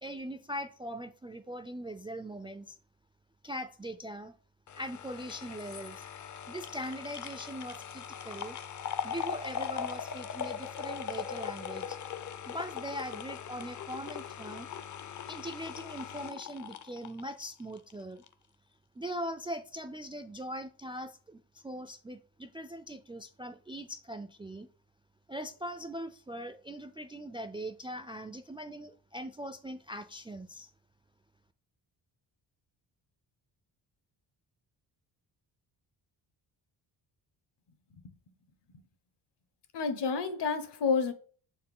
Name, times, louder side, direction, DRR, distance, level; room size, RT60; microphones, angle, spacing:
voice 1, 0.0-2.8 3.4-4.3 4.7-6.1 6.5-8.6 9.0-12.0 12.4-14.7 15.3-18.2 19.0-24.7 25.3-30.7, equal, 15° right, 0.3 m, -41 dB
sound 1, 4.7-17.9 18.3-18.4, left 8 dB, 40° left, 0.6 m, -40 dB
voice 2, 39.7-41.1, left 5 dB, 65° left, 1.2 m, -30 dB
7.3 x 4.5 x 3.6 m
cardioid pair, 130°, 44 cm